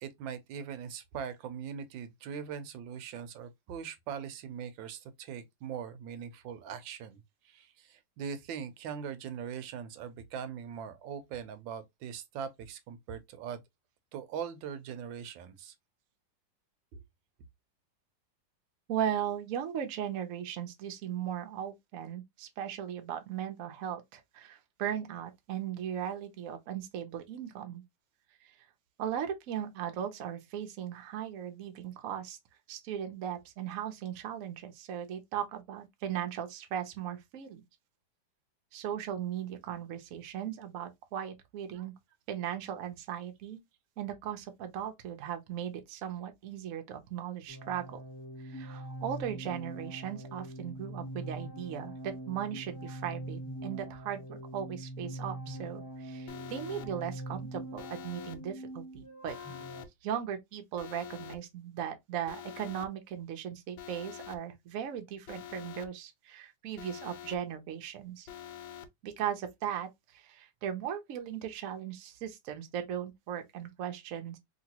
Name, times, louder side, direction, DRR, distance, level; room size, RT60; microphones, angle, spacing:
voice 1, 0.0-13.6 14.1-15.7 16.9-17.0 41.7-41.9, right 7 dB, 85° right, 1.3 m, -41 dB
voice 2, 18.9-27.8 28.4-28.5 29.0-32.4 32.7-37.6 38.7-41.9 42.3-43.6 44.0-48.0 48.4-59.4 60.0-68.3 69.0-74.4, right 9 dB, 65° right, 0.9 m, -38 dB
sound 1, 47.5-59.8, right 1 dB, 25° left, 0.4 m, -43 dB
Alarm, 56.3-56.9 57.8-58.4 59.3-59.9 60.8-61.4 62.3-62.9 63.8-64.4 65.3-65.9 66.8-67.4 68.3-68.9, left 10 dB, 90° left, 1.3 m, -45 dB
2.9 x 2.9 x 2.8 m
omnidirectional pair, 2.0 m